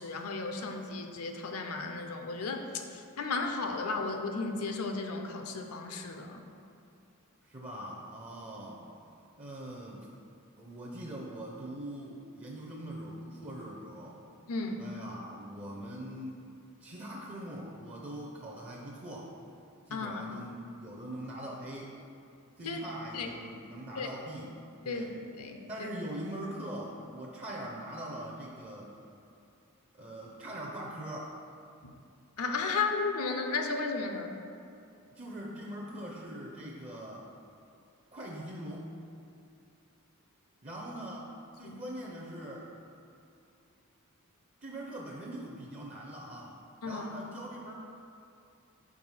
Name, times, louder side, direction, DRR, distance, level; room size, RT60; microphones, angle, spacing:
voice 1, 0.0-6.5 14.5-14.8 19.9-20.2 22.7-23.3 24.0-24.1 24.9-25.1 25.4-25.9 31.8-31.9 32.4-34.3 41.6-41.8 46.8-47.0, left 4 dB, 70° left, 4 dB, 0.6 m, -34 dB
voice 2, 7.4-8.9 9.4-10.1 10.6-14.2 14.8-16.5 16.8-19.3 19.9-22.0 22.6-24.5 24.8-25.1 25.7-28.9 29.9-31.4 35.1-37.3 38.1-38.9 40.6-42.7 44.6-47.7, right 1 dB, 30° right, -2 dB, 0.5 m, -42 dB
4.7 x 4.3 x 5.5 m, 2.6 s
head